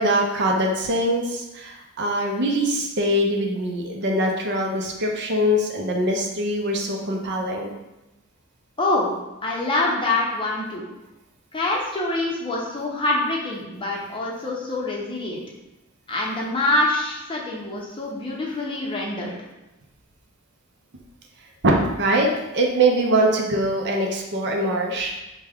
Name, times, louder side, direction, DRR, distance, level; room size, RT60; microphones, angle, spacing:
voice 1, 0.0-7.7 21.6-22.3 22.5-25.2, right 1 dB, 50° right, 1 dB, 0.5 m, -22 dB
voice 2, 8.8-9.1 9.4-10.8 11.5-15.4 16.1-19.3, left 2 dB, 25° left, -3 dB, 0.7 m, -25 dB
4.6 x 2.2 x 3.5 m, 0.97 s
head